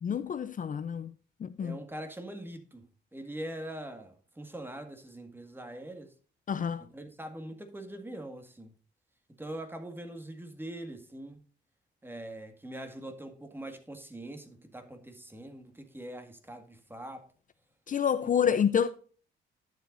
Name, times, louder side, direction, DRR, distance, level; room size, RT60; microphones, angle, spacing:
voice 1, 0.0-1.1 1.4-1.8 6.5-6.9 17.9-18.9, left 8 dB, 40° left, 0.6 m, -28 dB
voice 2, 1.6-6.1 6.9-8.7 9.4-11.4 12.0-17.3 18.4-18.6, right 1 dB, 10° right, 1.8 m, -43 dB
11.5 x 7.7 x 2.6 m
cardioid pair, 90°, 20 cm